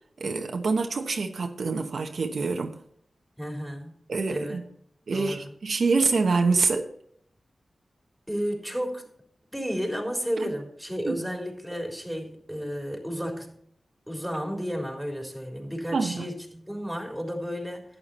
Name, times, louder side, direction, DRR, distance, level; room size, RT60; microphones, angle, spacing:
voice 1, 0.2-2.8 4.1-4.6 5.1-6.9 10.4-10.5 11.1-11.2 15.9-16.3, right 4 dB, 75° right, 1.0 m, -26 dB
voice 2, 3.4-4.0 4.3-4.6 5.1-5.5 8.3-9.0 9.5-13.6 14.1-17.8, equal, ahead, 3.8 m, -32 dB
11.0 x 9.5 x 4.2 m
cardioid pair, 45°, 0 cm